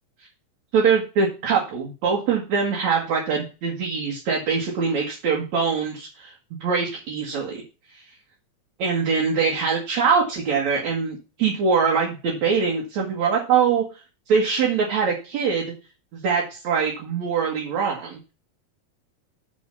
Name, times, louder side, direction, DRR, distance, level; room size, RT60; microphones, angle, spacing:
voice 1, 0.7-6.3 6.6-7.6 7.9-8.0 8.8-13.8 14.3-15.7 16.1-18.2, right 5 dB, 70° right, -2 dB, 3.1 m, -23 dB
6.7 x 5.5 x 6.8 m, 0.32 s
omnidirectional pair, 3.3 m